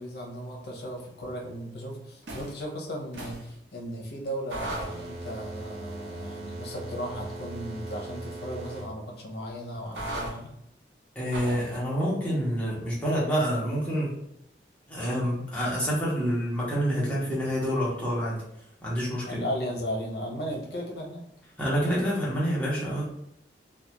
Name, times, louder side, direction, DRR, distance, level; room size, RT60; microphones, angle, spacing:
voice 1, 0.0-10.5 19.3-21.3, equal, 65° left, 0 dB, 0.6 m, -36 dB
sound 1, 2.2-2.6 3.1-3.5 4.5-8.9 9.9-10.3 11.3-11.7, right 2 dB, 85° right, 0.6 m, -37 dB
voice 2, 11.1-14.1 14.9-18.4 18.8-19.4 21.6-23.0, equal, 10° left, -8 dB, 0.7 m, -27 dB
2.3 x 2.1 x 2.9 m, 0.76 s
head